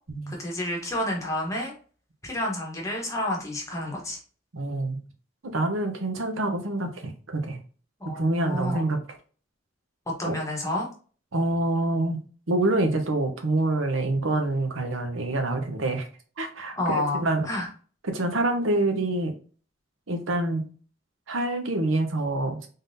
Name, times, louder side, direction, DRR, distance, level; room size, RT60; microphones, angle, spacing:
voice 1, 0.3-1.7 2.2-4.2 8.0-8.8 10.1-10.9 16.8-17.7, left 1 dB, 15° left, -1 dB, 1.0 m, -29 dB
voice 2, 4.5-5.0 5.4-7.6 8.0-9.0 10.2-10.3 11.3-16.1 16.4-17.5 18.0-19.3 20.1-20.6 21.3-22.6, right 2 dB, 80° right, 5 dB, 0.8 m, -26 dB
3.7 x 3.7 x 2.6 m, 0.40 s
head